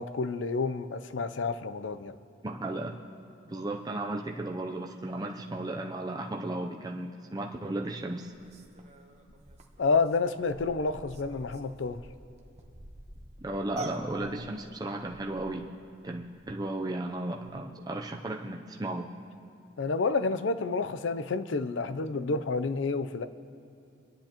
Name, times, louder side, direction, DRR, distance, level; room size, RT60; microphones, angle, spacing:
voice 1, 0.0-2.2 9.8-12.0 19.8-23.3, left 4 dB, 85° left, 13 dB, 0.6 m, -29 dB
voice 2, 2.4-2.9 3.4-8.3 13.4-15.7 16.0-19.1, right 2 dB, 20° right, 1 dB, 0.5 m, -35 dB
sound 1, 8.2-16.7 17.0-17.1 17.5-17.6, right 1 dB, 40° right, 1.0 m, -47 dB
26.5 x 10.0 x 3.0 m, 2.6 s
head